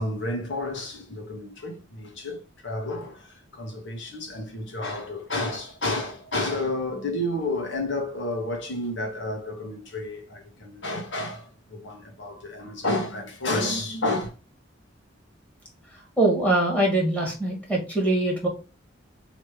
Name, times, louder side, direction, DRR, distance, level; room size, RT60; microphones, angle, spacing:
voice 1, 0.0-14.3, left 2 dB, 70° left, 1.4 m, -31 dB
voice 2, 16.2-18.5, right 2 dB, 5° left, 1.7 m, -23 dB
3.2 x 3.1 x 4.7 m
head